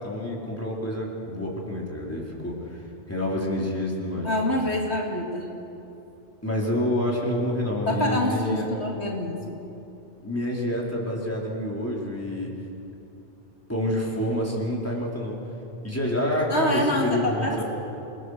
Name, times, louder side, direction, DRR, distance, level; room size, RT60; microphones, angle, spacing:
voice 1, 0.0-2.8 3.1-4.3 6.4-8.7 10.2-12.5 13.7-15.4 15.8-17.6, left 1 dB, 10° left, -3 dB, 4.3 m, -28 dB
voice 2, 4.2-5.5 7.9-9.6 16.5-17.6, left 1 dB, 70° left, 0 dB, 2.6 m, -26 dB
28.5 x 21.5 x 6.7 m, 2.9 s
omnidirectional pair, 1.2 m